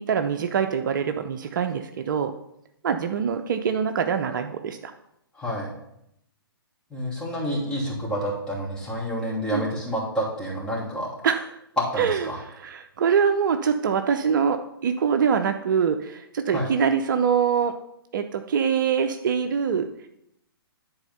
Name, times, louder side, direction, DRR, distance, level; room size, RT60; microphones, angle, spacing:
voice 1, 0.0-2.3 2.8-4.9 9.5-9.6 11.2-11.5 12.0-17.7 18.1-19.9, right 7 dB, 55° right, 7 dB, 0.6 m, -24 dB
voice 2, 5.3-5.7 6.9-11.1 11.8-12.4 16.5-16.7, equal, 5° left, -6 dB, 2.8 m, -28 dB
10.5 x 4.3 x 5.5 m, 0.79 s
figure-of-eight pair, 125°, 13 cm